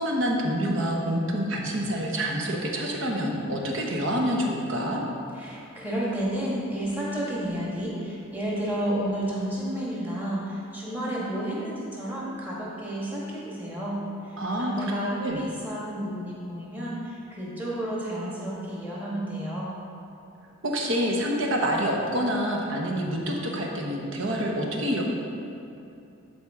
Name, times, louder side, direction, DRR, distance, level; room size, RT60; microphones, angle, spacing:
voice 1, 0.0-5.0 14.4-14.9 15.2-15.4 20.6-25.0, equal, 60° right, -1 dB, 1.1 m, -27 dB
voice 2, 5.3-14.0 14.6-19.7, right 1 dB, 10° right, -6 dB, 1.5 m, -31 dB
12.0 x 4.5 x 3.6 m, 2.7 s
head